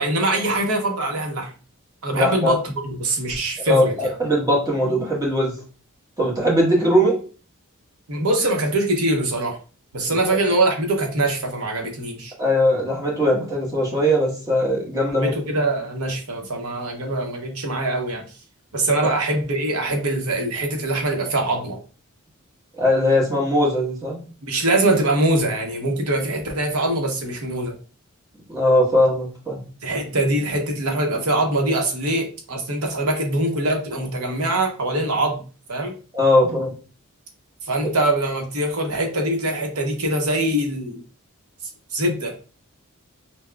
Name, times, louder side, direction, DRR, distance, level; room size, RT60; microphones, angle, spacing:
voice 1, 0.0-1.5 2.0-2.6 2.8-3.9 8.1-9.6 9.9-12.3 15.2-18.2 18.7-21.8 24.4-27.7 29.8-35.4 35.7-35.9 37.6-41.0 41.9-42.3, right 1 dB, 70° right, 3 dB, 0.9 m, -23 dB
voice 2, 2.1-2.6 3.7-5.5 6.2-7.2 10.1-10.4 12.4-15.3 22.8-24.2 28.5-29.7 36.1-36.7, left 1 dB, 15° right, -4 dB, 1.3 m, -20 dB
5.8 x 2.2 x 2.2 m, 0.37 s
head